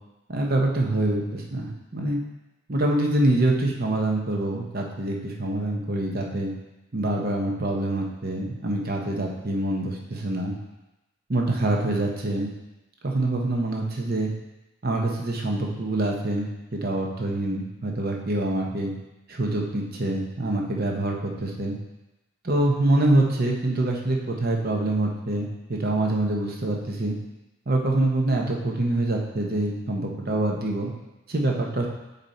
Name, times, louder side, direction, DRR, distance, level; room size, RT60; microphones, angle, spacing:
voice 1, 0.3-2.2 2.7-6.5 6.9-10.5 11.3-12.5 13.0-14.3 14.8-16.5 16.8-18.9 19.3-21.8 22.4-27.2 27.7-30.9 31.3-31.9, right 2 dB, 45° right, 0 dB, 0.9 m, -25 dB
6.8 x 4.2 x 4.2 m, 1.0 s
head